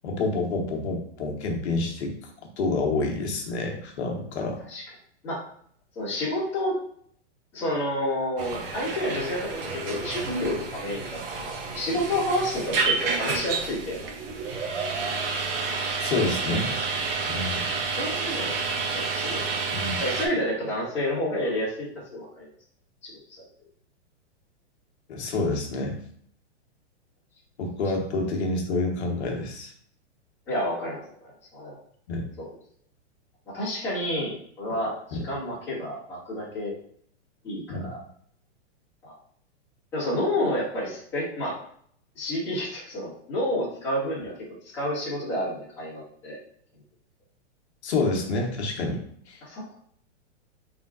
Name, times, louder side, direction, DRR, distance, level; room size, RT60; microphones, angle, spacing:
voice 1, 0.0-2.2 2.6-4.6 16.0-16.7 17.3-17.6 19.7-20.0 25.1-25.9 27.6-29.7 32.1-32.3 35.1-35.2 37.7-37.9 47.8-49.4, left 3 dB, 65° left, 2 dB, 1.1 m, -28 dB
voice 2, 6.0-6.8 7.5-14.1 17.3-17.5 17.9-18.6 18.9-19.5 20.0-22.5 23.0-23.2 30.5-31.8 32.4-32.5 33.5-36.7 37.4-38.0 39.0-39.1 39.9-41.6 42.2-44.3 44.7-46.4 49.4-49.8, left 1 dB, 5° left, -13 dB, 1.7 m, -30 dB
sound 1, 8.4-20.3, right 4 dB, 50° right, 0.8 m, -30 dB
4.5 x 3.7 x 2.4 m, 0.63 s
hypercardioid pair, 170°, 36 cm